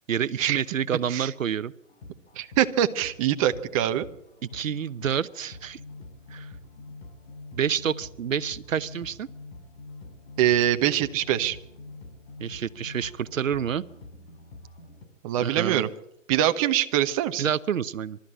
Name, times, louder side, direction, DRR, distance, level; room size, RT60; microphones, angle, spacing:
voice 1, 0.1-1.7 4.5-5.8 6.3-6.5 7.5-9.3 12.4-13.8 15.4-15.8 17.4-18.2, right 8 dB, 80° right, 16 dB, 0.9 m, -28 dB
sound 1, 1.9-15.1, left 3 dB, 55° left, 5.3 m, -45 dB
voice 2, 2.4-4.1 10.4-11.6 15.2-15.9 16.3-17.4, right 11 dB, 25° right, 8 dB, 1.0 m, -23 dB
25.0 x 13.0 x 8.7 m, 0.80 s
hypercardioid pair, 145°, 38 cm